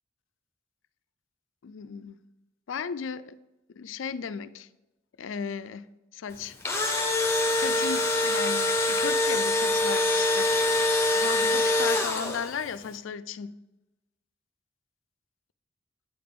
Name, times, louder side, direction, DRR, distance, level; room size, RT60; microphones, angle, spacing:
voice 1, 1.6-2.2 2.7-3.3 3.8-4.7 5.2-5.9 6.1-6.5 7.5-10.5 11.1-13.5, left 6 dB, 85° left, 0.4 m, -35 dB
Engine / Drill, 6.4-12.6, left 2 dB, 15° left, 1.0 m, -24 dB
8.5 x 6.8 x 3.6 m
head